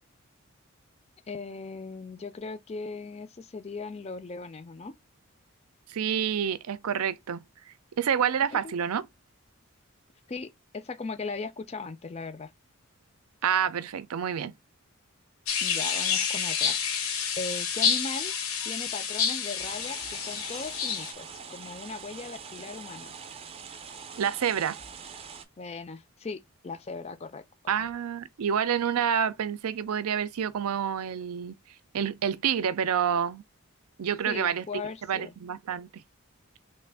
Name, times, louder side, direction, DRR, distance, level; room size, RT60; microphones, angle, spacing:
voice 1, 1.3-4.9 8.5-8.7 10.3-12.5 15.6-16.8 17.4-18.3 18.6-23.1 25.6-27.8 34.3-35.3, left 4 dB, 30° left, 0.4 m, -38 dB
voice 2, 5.9-7.4 8.0-9.0 13.4-14.5 24.2-24.8 27.7-31.6 31.9-33.4 34.0-34.7 35.1-36.0, right 8 dB, 90° right, 0.5 m, -28 dB
sound 1, 15.5-21.1, left 7 dB, 75° left, 0.8 m, -29 dB
sound 2, 19.6-25.4, right 6 dB, 25° right, 0.5 m, -44 dB
3.3 x 2.4 x 3.4 m
head